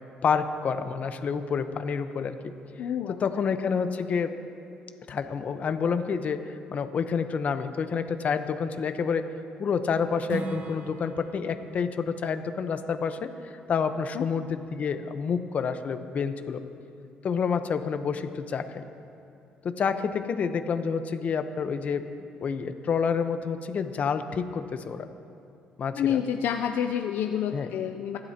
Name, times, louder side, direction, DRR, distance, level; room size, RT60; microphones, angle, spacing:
voice 1, 0.2-2.5 3.2-4.3 5.1-9.3 9.6-16.6 17.2-18.8 19.6-22.0 22.4-25.1 25.8-26.2 27.5-27.7, left 6 dB, 45° left, 9 dB, 0.9 m, -28 dB
voice 2, 2.8-3.1 14.1-14.3 25.9-28.2, left 9 dB, 70° left, 5 dB, 0.5 m, -28 dB
Strum, 10.3-15.5, right 4 dB, 55° right, 1.1 m, -42 dB
25.0 x 12.0 x 2.9 m, 2.6 s
cardioid pair, 95°, 3 cm